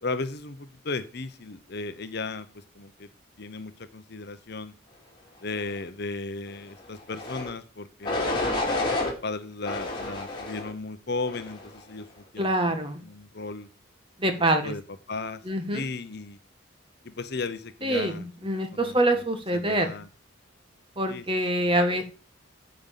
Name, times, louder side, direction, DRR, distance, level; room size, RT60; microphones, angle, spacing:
voice 1, 0.0-3.1 3.4-4.7 5.4-8.4 9.0-13.7 14.6-14.8 15.1-15.4 15.7-16.4 17.0-18.2 18.7-19.2 19.5-20.1 21.1-21.3, left 3 dB, 50° left, 11 dB, 0.8 m, -35 dB
sound 1, 7.1-7.5 8.0-9.1 9.6-10.7 11.3-11.7, left 2 dB, 20° left, 2.6 m, -29 dB
voice 2, 12.4-13.0 14.2-14.7 15.4-15.8 17.8-19.9 21.0-22.0, right 1 dB, 25° right, 7 dB, 1.5 m, -25 dB
9.3 x 5.4 x 7.4 m, 0.34 s
head